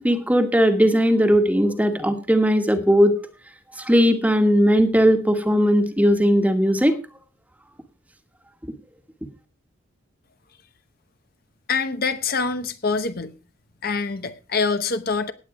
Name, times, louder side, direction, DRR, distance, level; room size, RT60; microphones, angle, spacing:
voice 1, 0.0-3.1 3.9-7.0, equal, 5° right, 1.4 m, -18 dB
voice 2, 11.7-13.3 13.8-15.3, left 4 dB, 50° left, 0.9 m, -25 dB
17.5 x 8.7 x 4.8 m
head